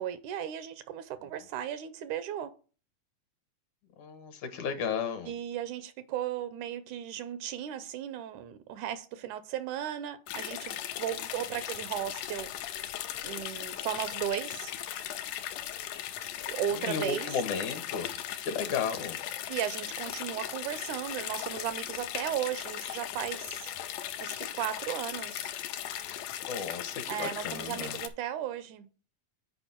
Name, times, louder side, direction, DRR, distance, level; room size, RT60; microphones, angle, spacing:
voice 1, 0.0-2.5 5.3-12.5 13.2-14.7 16.5-17.4 19.5-23.7 24.2-25.5 27.1-29.0, right 10 dB, 80° right, 2.0 m, -36 dB
voice 2, 4.0-5.3 16.7-19.2 26.1-28.0, left 6 dB, 70° left, 2.5 m, -34 dB
sound 1, 10.3-28.1, left 11 dB, 85° left, 2.2 m, -38 dB
9.0 x 5.1 x 4.4 m
omnidirectional pair, 3.6 m